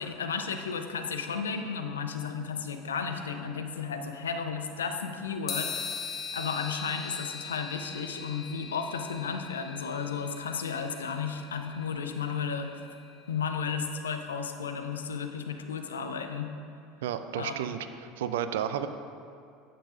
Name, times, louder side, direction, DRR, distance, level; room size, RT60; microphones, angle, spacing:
voice 1, 0.0-6.1 6.3-12.8 13.3-16.5 17.4-17.5, left 6 dB, 80° left, 6 dB, 0.5 m, -33 dB
sound 1, 5.5-13.1, left 6 dB, 35° left, 0.9 m, -41 dB
voice 2, 17.0-18.9, right 9 dB, 70° right, 10 dB, 0.4 m, -32 dB
10.0 x 8.2 x 2.4 m, 2.4 s
figure-of-eight pair, 70°, 0 cm